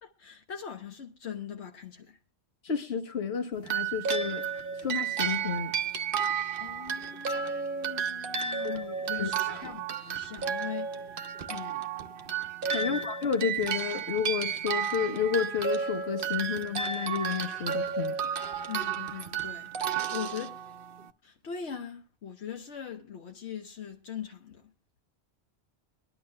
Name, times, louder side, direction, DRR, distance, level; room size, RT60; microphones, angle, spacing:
voice 1, 0.0-2.2 6.5-10.9 11.5-11.9 12.8-13.0 18.7-19.7 20.1-20.6 21.2-24.6, left 8 dB, 85° left, 1.3 m, -41 dB
voice 2, 2.6-4.5 4.8-5.7 8.6-8.7 9.2-9.6 12.7-18.1, left 7 dB, 65° left, 1.5 m, -31 dB
sound 1, 3.6-21.1, right 7 dB, 55° right, 0.9 m, -32 dB
23.5 x 11.0 x 2.2 m
omnidirectional pair, 1.1 m